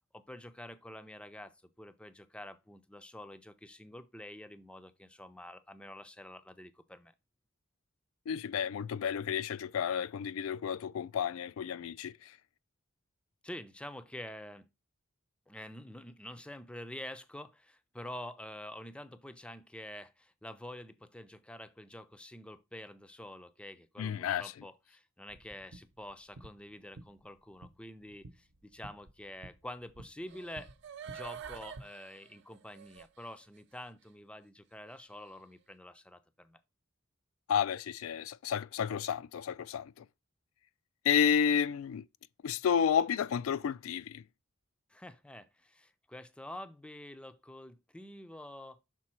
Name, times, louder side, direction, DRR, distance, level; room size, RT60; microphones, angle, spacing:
voice 1, 0.1-7.1 13.4-14.7 15.5-30.7 31.1-36.6 44.9-48.8, left 1 dB, 5° left, 0.4 m, -47 dB
voice 2, 8.3-12.4 24.0-24.5 37.5-40.0 41.0-42.0 42.4-44.2, left 8 dB, 80° left, 0.3 m, -31 dB
sound 1, 25.3-31.8, right 2 dB, 85° right, 0.8 m, -53 dB
sound 2, 30.3-33.3 33.8-33.9, right 8 dB, 55° right, 0.5 m, -47 dB
6.3 x 4.0 x 4.3 m
head